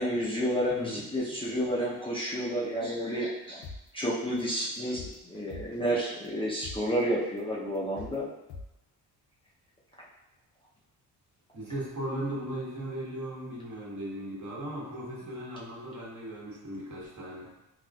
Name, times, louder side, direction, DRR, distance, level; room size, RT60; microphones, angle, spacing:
voice 1, 0.0-3.7 3.9-8.3, equal, 15° left, -6 dB, 0.6 m, -30 dB
voice 2, 0.7-1.1 11.5-17.5, right 1 dB, 45° right, -4 dB, 1.2 m, -37 dB
sound 1, 3.6-3.8 4.2-4.4 4.8-5.9 6.3-6.4 6.6-6.8 7.2-7.4 7.8-8.2 8.5-8.6, left 4 dB, 85° left, 0.5 m, -42 dB
4.1 x 2.3 x 2.3 m, 0.94 s
cardioid pair, 70°, 40 cm